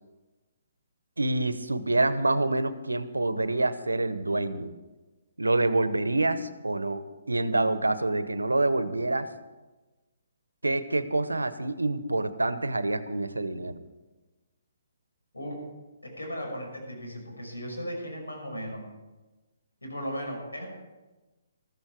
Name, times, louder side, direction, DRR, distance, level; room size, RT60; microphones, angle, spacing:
voice 1, 1.2-4.7 5.4-9.3 10.6-13.8, right 2 dB, 90° right, 14 dB, 0.9 m, -27 dB
voice 2, 16.0-18.8 19.8-20.7, equal, 85° left, 0 dB, 5.7 m, -36 dB
14.0 x 13.5 x 4.8 m, 1.2 s
figure-of-eight pair, 135°, 0 cm